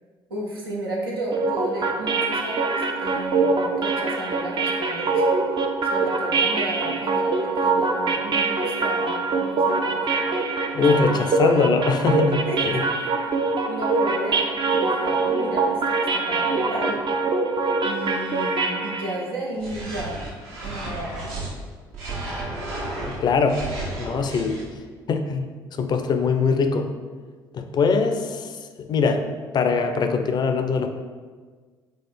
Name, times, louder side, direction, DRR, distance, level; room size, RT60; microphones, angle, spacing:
voice 1, 0.3-5.3 5.8-10.5 11.1-11.3 11.5-11.6 12.5-12.8 13.7-17.0 17.8-20.2 20.6-21.4, right 1 dB, 85° right, -3 dB, 0.6 m, -33 dB
sound 1, 1.3-19.2, right 3 dB, 40° right, 0.5 m, -24 dB
voice 2, 10.7-12.8 23.2-23.6 24.0-24.6 25.1-25.5 25.8-26.9 27.5-28.5 28.8-29.3 29.5-30.9, left 4 dB, 35° left, 7 dB, 0.4 m, -22 dB
sound 2, 19.6-21.5 21.9-24.6, right 2 dB, 65° right, 0.9 m, -33 dB
4.3 x 2.4 x 4.2 m, 1.5 s
figure-of-eight pair, 50°, 12 cm